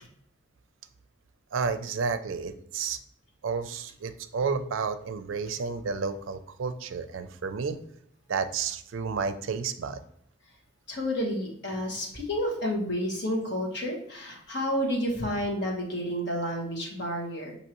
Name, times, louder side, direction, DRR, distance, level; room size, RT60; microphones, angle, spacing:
voice 1, 1.5-3.0 3.4-7.8 8.3-10.0, right 5 dB, 85° right, 11 dB, 0.4 m, -31 dB
voice 2, 10.9-17.6, equal, 60° left, -1 dB, 1.3 m, -30 dB
6.3 x 2.9 x 2.9 m, 0.69 s
head